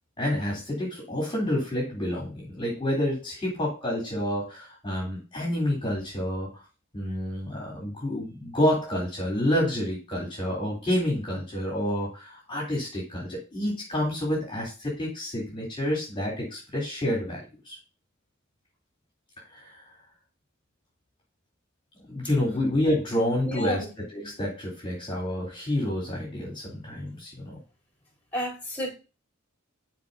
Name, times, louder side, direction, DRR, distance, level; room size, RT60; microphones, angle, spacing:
voice 1, 0.2-6.6 6.9-17.8 19.5-19.9 22.1-23.8 24.1-27.6, left 1 dB, 25° left, -3 dB, 3.3 m, -29 dB
voice 2, 23.4-23.9 28.3-28.9, equal, 10° left, -4 dB, 4.2 m, -31 dB
12.5 x 4.8 x 2.7 m, 0.31 s
head